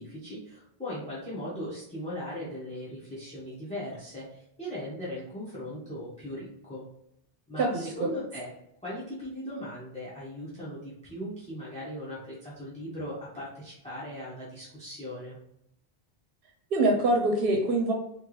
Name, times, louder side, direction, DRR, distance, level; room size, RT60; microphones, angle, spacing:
voice 1, 0.0-6.9 7.5-8.5 8.8-15.4, equal, 5° left, -9 dB, 1.1 m, -38 dB
voice 2, 7.6-8.1 16.7-17.9, right 2 dB, 70° right, 2 dB, 0.8 m, -24 dB
4.5 x 2.4 x 3.1 m, 0.78 s
omnidirectional pair, 1.0 m